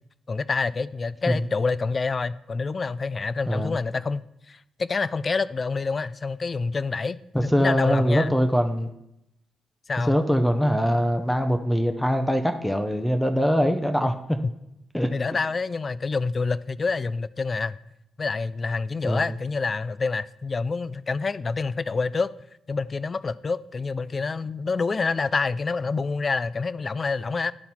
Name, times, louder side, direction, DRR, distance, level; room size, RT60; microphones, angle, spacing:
voice 1, 0.3-8.3 9.9-10.2 15.1-17.8 18.2-22.3 22.7-27.5, left 4 dB, 40° left, 18 dB, 0.3 m, -27 dB
voice 2, 3.5-3.8 7.3-8.9 10.1-14.4 14.9-15.1 19.0-19.3, equal, 5° left, 6 dB, 0.6 m, -23 dB
10.5 x 4.0 x 4.3 m, 0.83 s
cardioid pair, 70°, 0 cm